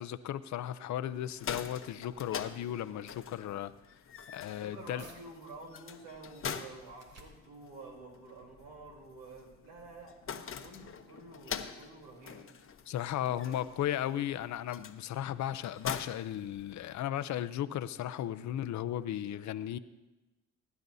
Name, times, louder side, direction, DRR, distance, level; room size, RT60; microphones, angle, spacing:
voice 1, 0.0-3.7 4.3-5.0 12.9-19.8, left 11 dB, 65° left, 0.7 m, -35 dB
sound 1, 1.2-17.1, left 7 dB, 45° left, 1.0 m, -45 dB
voice 2, 4.5-10.2 10.6-12.5 13.1-14.1, right 3 dB, 90° right, 3.6 m, -50 dB
sound 2, 5.0-5.2 5.7-11.0, right 2 dB, 55° right, 2.8 m, -62 dB
20.5 x 11.0 x 2.7 m
supercardioid pair, 70°, 31 cm